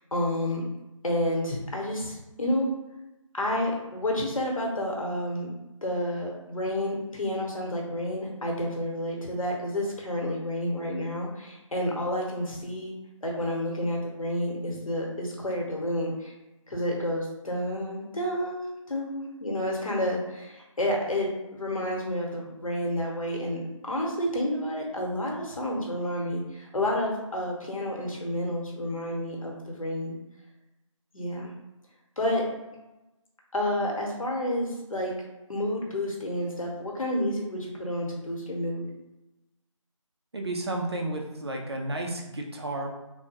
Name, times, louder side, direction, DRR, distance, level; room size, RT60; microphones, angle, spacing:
voice 1, 0.1-0.6 1.0-2.7 3.3-5.5 5.8-12.9 13.2-16.3 16.7-30.2 31.1-31.5 32.2-32.4 33.5-35.1 35.5-38.9, left 1 dB, 80° left, -1 dB, 1.0 m, -30 dB
voice 2, 40.3-42.9, right 2 dB, 50° right, 1 dB, 0.5 m, -32 dB
3.4 x 2.2 x 2.8 m, 1.0 s
figure-of-eight pair, 170°, 17 cm